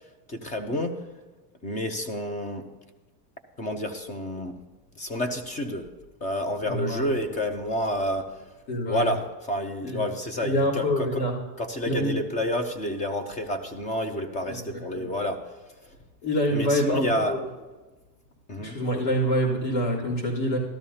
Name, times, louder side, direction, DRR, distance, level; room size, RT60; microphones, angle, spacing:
voice 1, 0.3-0.9 1.6-2.6 3.6-4.5 5.0-5.8 6.2-8.3 8.9-9.2 9.5-11.2 11.6-15.4 16.5-17.3 18.5-18.8, equal, 15° left, 8 dB, 0.5 m, -29 dB
voice 2, 6.7-7.1 8.7-9.1 9.8-10.0 10.4-11.3 11.9-12.2 14.5-15.1 16.2-17.4 18.6-20.6, equal, 80° left, -5 dB, 3.6 m, -26 dB
13.0 x 12.5 x 2.8 m, 1.2 s
supercardioid pair, 145°, 50 cm